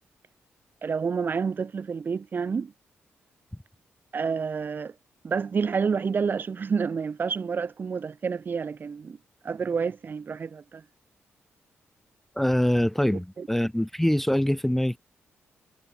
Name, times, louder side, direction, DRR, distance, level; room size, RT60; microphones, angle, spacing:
voice 1, 0.8-2.7 4.1-4.9 5.2-9.2 9.4-10.8 13.1-13.5, right 5 dB, 45° right, 0.8 m, -29 dB
voice 2, 12.4-15.0, left 1 dB, 5° left, 0.5 m, -24 dB
cardioid pair, 70°, 5 cm